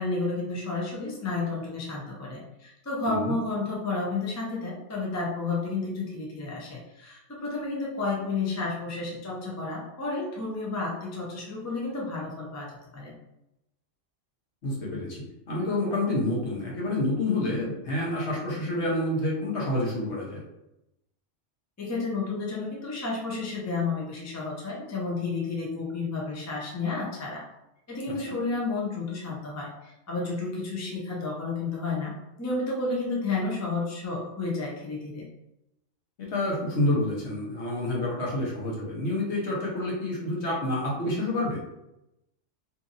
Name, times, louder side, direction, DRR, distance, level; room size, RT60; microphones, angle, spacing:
voice 1, 0.0-13.1 21.8-27.4 27.9-32.1 32.4-35.3, left 3 dB, 25° left, -3 dB, 0.4 m, -31 dB
voice 2, 3.1-3.4 14.6-15.2 15.5-20.4 36.2-41.6, left 1 dB, 65° left, -4 dB, 1.1 m, -28 dB
2.8 x 2.6 x 2.5 m, 0.88 s
omnidirectional pair, 1.3 m